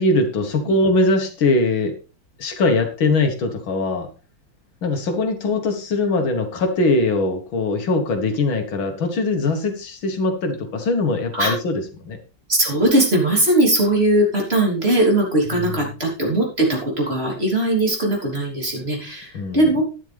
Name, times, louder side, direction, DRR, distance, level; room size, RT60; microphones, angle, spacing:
voice 1, 0.0-1.9 2.4-4.1 4.8-12.2 19.3-19.6, left 2 dB, 70° left, 5 dB, 2.3 m, -21 dB
voice 2, 12.5-19.8, right 1 dB, 30° right, -1 dB, 3.6 m, -19 dB
12.0 x 9.8 x 3.4 m, 0.34 s
omnidirectional pair, 2.3 m